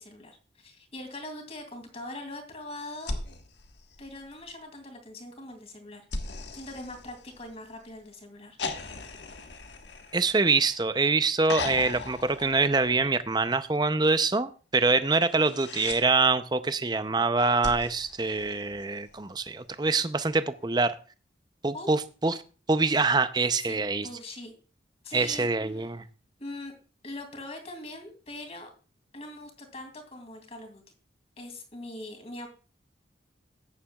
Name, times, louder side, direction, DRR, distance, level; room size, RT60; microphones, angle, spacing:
voice 1, 0.0-3.2 4.0-6.0 6.5-9.1 21.7-21.9 23.6-24.5 25.0-25.5 25.7-25.9 26.4-26.7 27.0-28.7 29.1-30.8 31.4-32.5, left 1 dB, 35° left, 4 dB, 2.7 m, -42 dB
sound 1, 3.0-4.6 6.1-7.8 8.6-10.9 11.4-13.3 15.2-16.0 17.6-19.1 20.6-20.7, left 3 dB, 80° left, 1.5 m, -38 dB
voice 2, 10.1-21.0 21.6-22.3 22.7-24.1 25.1-26.0, right 3 dB, 25° right, 12 dB, 0.6 m, -25 dB
14.0 x 10.0 x 2.3 m, 0.36 s
head